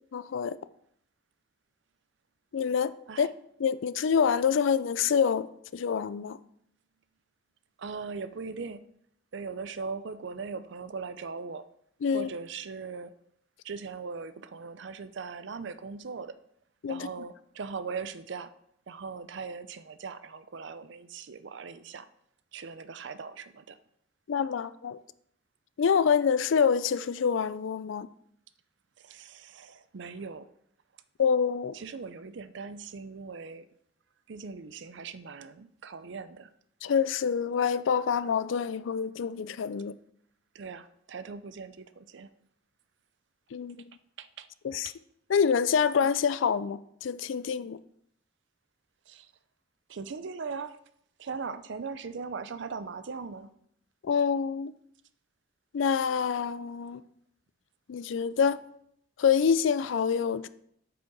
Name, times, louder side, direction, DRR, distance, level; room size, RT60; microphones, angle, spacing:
voice 1, 0.1-0.6 2.5-2.9 3.2-3.3 3.6-5.5 5.7-6.4 12.0-12.3 16.8-17.1 24.3-25.0 25.8-28.1 31.2-31.7 36.8-39.9 43.5-43.8 44.6-44.9 45.3-47.8 54.0-54.7 55.7-57.0 57.9-58.6 59.2-60.5, left 6 dB, 70° left, 0.4 m, -26 dB
voice 2, 7.8-8.8 9.3-11.6 12.1-13.1 13.6-16.3 16.9-18.5 18.9-22.1 22.5-23.8 29.0-30.5 31.7-33.7 34.3-36.5 40.5-42.3 44.2-44.5 49.1-49.3 49.9-50.8 51.2-53.5, right 5 dB, 65° right, 0.5 m, -39 dB
8.3 x 5.1 x 4.6 m
head